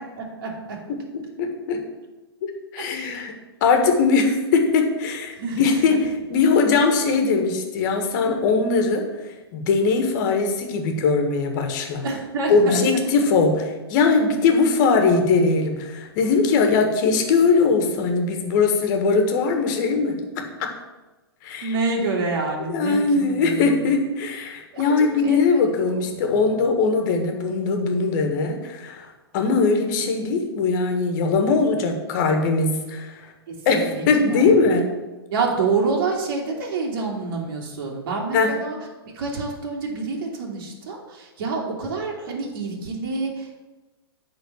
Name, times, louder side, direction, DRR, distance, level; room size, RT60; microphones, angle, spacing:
voice 1, 0.2-0.8 2.8-3.3 5.3-5.7 12.0-12.8 21.6-23.9 24.7-25.4 26.1-26.5 33.5-34.6 35.3-38.8 39.1-43.6, right 4 dB, 50° right, -1 dB, 2.4 m, -28 dB
voice 2, 1.4-1.8 2.4-3.3 3.6-6.0 6.3-9.1 9.5-12.0 12.5-20.7 21.4-21.7 22.7-29.1 29.3-33.3 33.6-34.9 38.3-38.6, left 4 dB, 45° left, 4 dB, 1.6 m, -20 dB
9.2 x 3.9 x 7.0 m, 1.1 s
hypercardioid pair, 115°, 14 cm